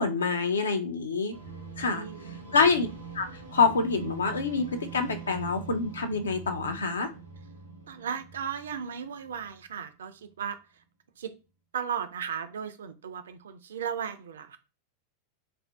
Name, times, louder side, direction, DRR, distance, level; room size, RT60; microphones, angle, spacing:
voice 1, 0.0-1.3 1.8-2.0 2.5-2.9 3.1-3.3 3.5-7.1, left 4 dB, 70° left, 0.5 m, -26 dB
sound 1, 1.3-9.9, right 5 dB, 85° right, 0.7 m, -44 dB
voice 2, 1.8-2.6 7.9-10.6 11.2-11.3 11.7-14.6, right 7 dB, 65° right, 0.4 m, -36 dB
2.5 x 2.1 x 3.3 m
figure-of-eight pair, 90°, 0 cm